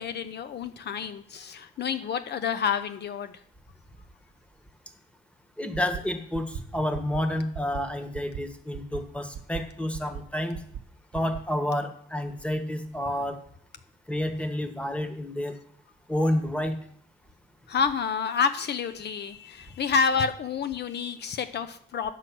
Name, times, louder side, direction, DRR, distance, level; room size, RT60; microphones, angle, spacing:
voice 1, 0.0-3.3 17.7-22.1, left 6 dB, 60° left, 11 dB, 0.8 m, -28 dB
voice 2, 5.6-10.6 11.1-13.4 14.1-15.5 16.1-16.8, left 1 dB, 5° left, 8 dB, 1.4 m, -29 dB
sound 1, 5.7-6.0 6.3-6.6 6.9-7.2 7.5-7.8 8.1-8.4 8.7-9.0 9.3-9.6 9.9-10.2 10.5-10.8 11.1-11.4, right 9 dB, 60° right, 1.0 m, -37 dB
9.2 x 7.5 x 6.1 m, 0.63 s
cardioid pair, 90°, 20 cm